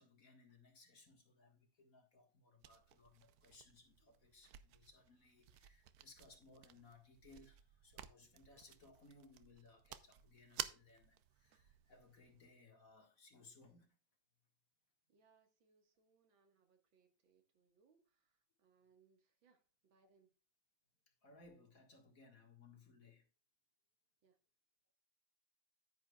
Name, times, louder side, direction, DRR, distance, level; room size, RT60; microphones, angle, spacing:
voice 1, 0.0-13.9 21.2-23.2, left 3 dB, 45° left, 2.0 m, -64 dB
sound 1, 2.6-12.5, right 11 dB, 65° right, 1.0 m, -54 dB
voice 2, 15.1-20.3 24.2-24.4, right 5 dB, 85° right, 2.4 m, -75 dB
10.0 x 9.6 x 2.3 m
omnidirectional pair, 2.1 m